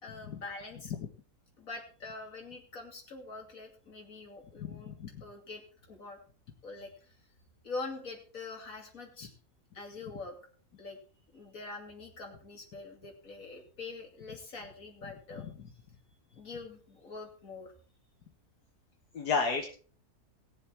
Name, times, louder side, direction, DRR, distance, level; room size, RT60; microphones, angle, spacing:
voice 1, 0.0-0.9 1.6-4.9 5.2-5.6 5.9-6.2 6.6-7.2 7.6-9.3 9.7-10.4 10.8-11.0 11.3-15.5 16.4-17.7, left 3 dB, 55° left, 1 dB, 3.1 m, -44 dB
voice 2, 4.6-5.1 19.1-19.7, left 5 dB, 80° left, 3 dB, 1.8 m, -32 dB
18.0 x 7.3 x 4.5 m, 0.41 s
omnidirectional pair, 1.7 m